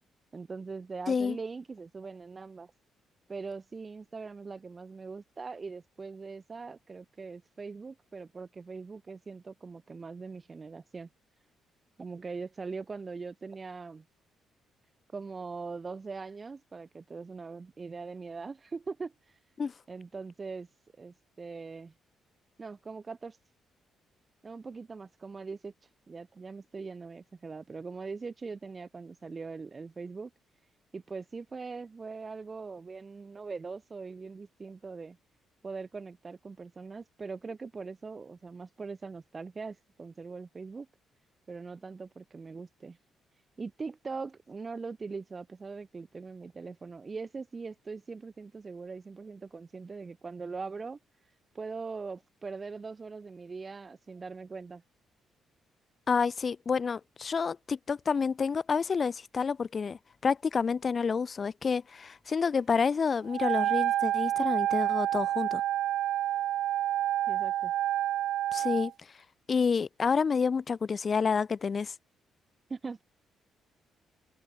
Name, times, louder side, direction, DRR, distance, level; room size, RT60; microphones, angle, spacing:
voice 1, 0.3-2.7 3.3-11.1 12.0-14.0 15.1-19.1 19.9-20.7 21.0-21.9 22.6-23.4 24.4-25.7 26.1-30.3 30.9-35.2 35.6-40.9 41.5-43.0 43.6-51.0 51.5-54.8 67.3-67.7 72.7-73.0, right 4 dB, 30° right, 3.8 m, -41 dB
voice 2, 56.1-65.6 68.5-69.1 69.5-71.9, left 5 dB, 40° left, 3.8 m, -29 dB
Wind instrument woodwind instrument, 63.3-68.9, right 12 dB, 80° right, 1.2 m, -28 dB
cardioid pair, 90°, 0 cm